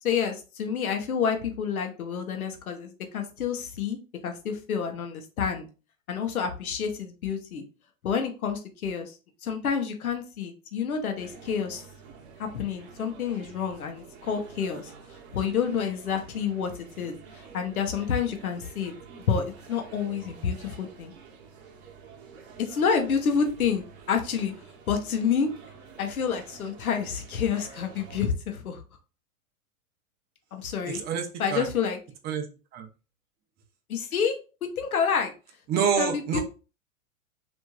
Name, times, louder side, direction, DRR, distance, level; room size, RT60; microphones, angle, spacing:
voice 1, 0.0-4.0 4.2-5.6 6.1-7.6 8.0-9.1 9.4-11.8 12.4-14.9 15.3-16.7 17.0-18.9 19.3-21.1 22.6-24.5 24.9-25.5 26.0-28.8 30.5-31.0 31.4-32.0 33.9-35.3 35.8-36.4, left 6 dB, 90° left, 5 dB, 0.7 m, -28 dB
sound 1, 11.1-28.3, right 6 dB, 50° right, 0.9 m, -48 dB
voice 2, 30.9-31.7 32.2-32.4 32.7-32.9 35.7-36.4, right 7 dB, 25° right, 6 dB, 0.5 m, -27 dB
3.0 x 2.5 x 2.2 m, 0.32 s
hypercardioid pair, 105°, 42 cm